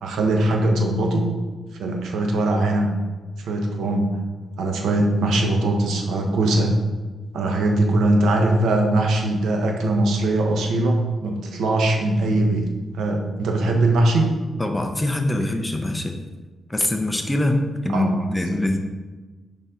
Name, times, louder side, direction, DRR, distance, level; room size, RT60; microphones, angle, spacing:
voice 1, 0.0-1.3 1.8-2.9 3.4-4.2 4.6-6.7 7.3-12.7 12.9-14.3 17.9-18.2, right 2 dB, 85° right, 2 dB, 1.0 m, -21 dB
voice 2, 14.6-16.2 16.7-18.8, left 1 dB, 10° left, 4 dB, 0.5 m, -23 dB
6.9 x 5.3 x 3.8 m, 1.3 s
wide cardioid pair, 155°, 0 cm